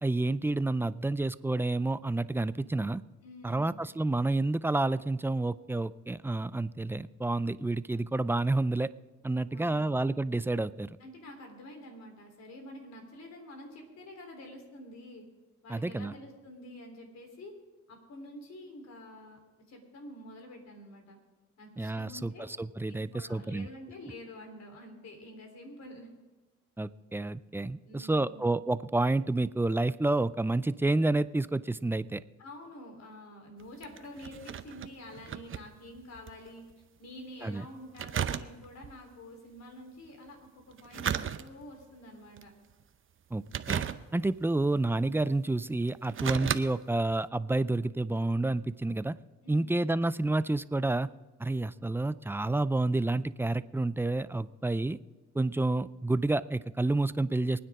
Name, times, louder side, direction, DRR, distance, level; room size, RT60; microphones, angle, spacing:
voice 1, 0.0-3.0 3.4-8.9 9.2-11.0 15.7-16.1 21.8-23.7 26.8-32.2 37.4-37.6 43.3-43.8 44.1-49.1 49.5-51.1 51.4-55.0 55.3-57.6, right 2 dB, 10° right, 15 dB, 0.4 m, -29 dB
voice 2, 3.2-3.8 9.5-10.0 11.0-15.2 15.6-17.5 17.9-19.4 19.7-21.2 21.6-22.5 22.9-26.1 27.8-28.5 32.4-36.6 37.0-42.5 49.4-49.7, left 1 dB, 60° left, 3 dB, 3.8 m, -48 dB
sound 1, 33.6-36.4 36.7-36.8 38.0-38.9 40.7-41.8 42.4-42.7 43.5-44.4 45.2-45.3 45.9-46.6 47.1-47.2, right 9 dB, 45° right, 0.7 m, -35 dB
25.0 x 9.6 x 3.7 m, 1.2 s
cardioid pair, 90°, 30 cm